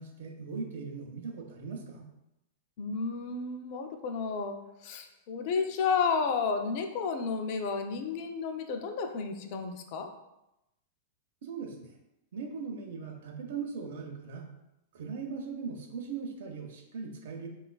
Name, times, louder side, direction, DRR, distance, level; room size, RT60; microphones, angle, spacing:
voice 1, 0.0-2.0 11.4-12.0 12.3-14.4 14.9-17.5, right 5 dB, 70° right, 2 dB, 0.5 m, -39 dB
voice 2, 2.8-4.6 4.8-10.1, left 5 dB, 50° left, 5 dB, 0.3 m, -32 dB
3.0 x 2.3 x 2.2 m, 0.90 s
hypercardioid pair, 120°, 0 cm